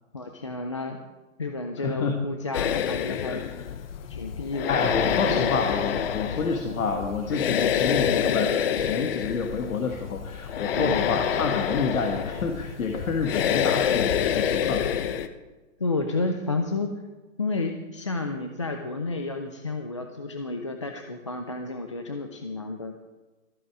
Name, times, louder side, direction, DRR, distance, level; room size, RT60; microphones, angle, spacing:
voice 1, 0.1-1.0 1.4-3.4 4.1-4.8 5.1-5.5 7.6-7.8 10.8-11.0 15.8-16.9 17.4-22.9, left 3 dB, 25° left, 5 dB, 0.3 m, -31 dB
voice 2, 1.8-2.2 3.3-3.4 4.7-14.9, left 5 dB, 70° left, 3 dB, 1.6 m, -28 dB
sound 1, 2.5-15.3, left 8 dB, 45° left, 0.8 m, -27 dB
14.0 x 8.0 x 6.0 m, 1.2 s
hypercardioid pair, 150°, 42 cm